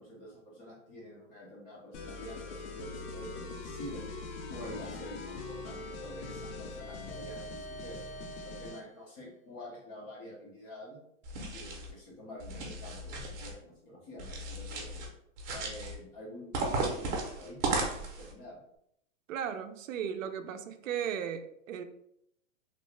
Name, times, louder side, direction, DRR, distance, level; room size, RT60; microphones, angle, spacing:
voice 1, 0.0-4.0 4.5-8.0 8.4-11.0 11.5-15.1 15.5-18.6, equal, 20° left, -3 dB, 0.4 m, -47 dB
sound 1, 1.9-8.9, left 3 dB, 60° left, 0.6 m, -42 dB
sound 2, 11.2-11.9 12.4-13.5 14.2-15.1 15.4-16.0 16.5-18.3, right 3 dB, 35° right, 0.7 m, -35 dB
voice 2, 19.3-21.8, right 8 dB, 75° right, 8 dB, 0.5 m, -36 dB
2.8 x 2.1 x 3.1 m, 0.75 s
hypercardioid pair, 135°, 38 cm